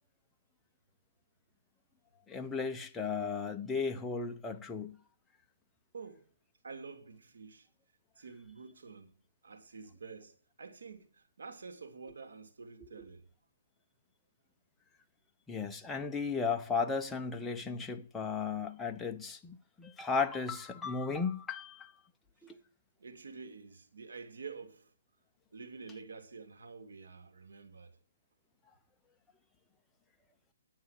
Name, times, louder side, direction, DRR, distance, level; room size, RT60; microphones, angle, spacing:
voice 1, 2.3-5.0 13.0-13.1 15.5-21.9 22.4-22.6, left 5 dB, 5° left, 0.8 m, -35 dB
voice 2, 5.9-6.3 6.6-7.7 8.2-9.1 9.4-13.3 22.4-22.5 23.0-24.9 25.5-28.0, right 4 dB, 80° right, 2.7 m, -48 dB
10.0 x 9.5 x 6.6 m
hypercardioid pair, 165°, 0 cm